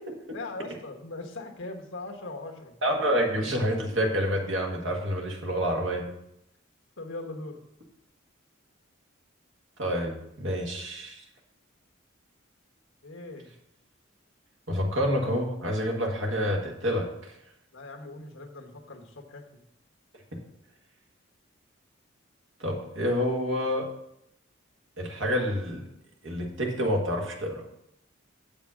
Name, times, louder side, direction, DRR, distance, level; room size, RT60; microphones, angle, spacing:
voice 1, 0.3-2.7 7.0-7.6 13.0-13.5 17.7-19.6, left 2 dB, 75° left, 2 dB, 1.3 m, -40 dB
voice 2, 2.8-6.1 9.8-11.2 14.7-17.0 22.6-23.9 25.0-25.8 26.2-27.6, equal, 70° right, 1 dB, 1.6 m, -28 dB
7.2 x 5.2 x 6.2 m, 0.79 s
head